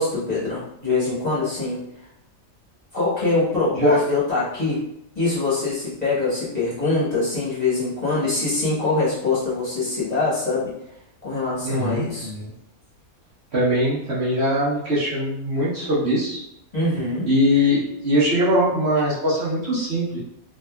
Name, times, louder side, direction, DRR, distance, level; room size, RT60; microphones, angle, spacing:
voice 1, 0.0-1.8 2.9-4.8 5.1-10.7 11.2-12.3 16.7-17.3, left 3 dB, 30° left, -10 dB, 1.2 m, -23 dB
voice 2, 11.6-12.5 13.5-16.4 17.2-20.2, equal, 55° right, -8 dB, 1.0 m, -21 dB
3.4 x 2.6 x 2.2 m, 0.77 s
omnidirectional pair, 1.5 m